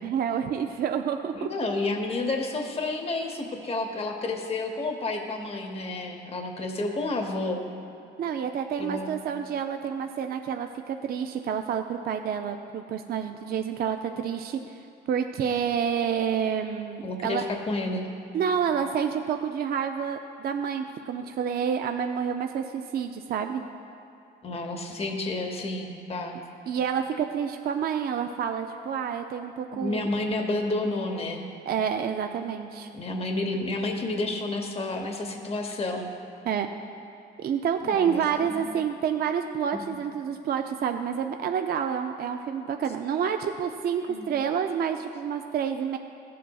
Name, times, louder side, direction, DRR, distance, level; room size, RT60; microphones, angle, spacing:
voice 1, 0.0-1.5 8.2-14.8 15.1-17.4 18.3-23.6 26.7-30.1 31.7-32.9 36.4-36.7 37.4-46.0, right 7 dB, 50° right, 5 dB, 0.4 m, -28 dB
voice 2, 1.3-7.6 8.8-9.2 17.0-18.1 24.4-26.4 29.7-31.5 32.9-36.1 37.8-38.7 39.7-39.8 44.1-44.3, left 2 dB, 30° left, 3 dB, 0.9 m, -30 dB
14.5 x 7.5 x 2.3 m, 2.5 s
cardioid pair, 90°, 20 cm